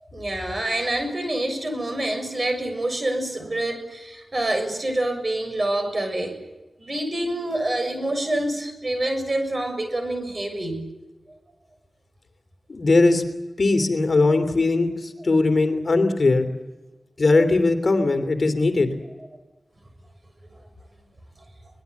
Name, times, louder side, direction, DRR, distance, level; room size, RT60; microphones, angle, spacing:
voice 1, 0.1-6.4 6.8-10.8, right 1 dB, 40° right, 7 dB, 6.9 m, -26 dB
voice 2, 12.7-13.2 13.6-16.4 17.2-18.9, left 3 dB, 55° left, 7 dB, 3.0 m, -19 dB
24.0 x 20.0 x 8.3 m, 1.1 s
wide cardioid pair, 80°, 0 cm